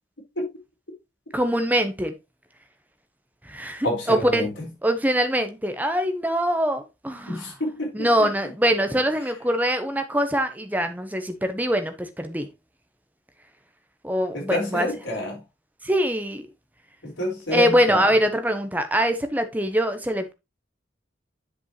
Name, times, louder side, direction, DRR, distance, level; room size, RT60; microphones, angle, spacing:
voice 1, 1.3-2.1 3.5-4.5 4.8-7.5 7.9-12.5 14.0-14.9 15.8-16.5 17.5-20.3, equal, 10° right, 0.9 m, -23 dB
voice 2, 3.8-4.7 7.3-8.5 8.9-9.3 14.3-15.4 17.0-18.2, left 1 dB, 85° left, 4.7 m, -29 dB
10.0 x 5.3 x 3.1 m
head